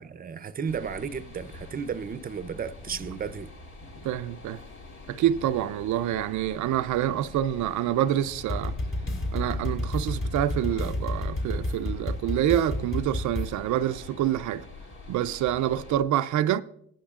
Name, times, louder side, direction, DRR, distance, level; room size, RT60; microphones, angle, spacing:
voice 1, 0.0-3.5, right 6 dB, 30° right, 0.6 m, -34 dB
sound 1, 0.7-16.0, left 3 dB, 70° left, 2.2 m, -45 dB
voice 2, 4.0-4.6 5.1-8.7 9.3-14.7 15.1-16.6, right 11 dB, 75° right, 0.5 m, -27 dB
sound 2, 8.5-13.5, left 1 dB, 45° left, 2.9 m, -30 dB
18.0 x 11.5 x 2.4 m
cardioid pair, 90°, 30 cm